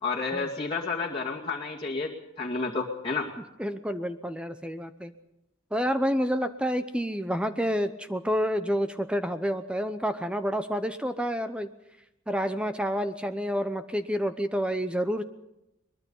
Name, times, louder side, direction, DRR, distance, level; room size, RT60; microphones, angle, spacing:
voice 1, 0.0-3.3, left 4 dB, 25° left, -5 dB, 2.3 m, -31 dB
voice 2, 3.6-5.1 5.7-11.7 12.3-15.2, equal, 5° right, 9 dB, 0.8 m, -29 dB
22.5 x 22.0 x 5.5 m, 0.89 s
head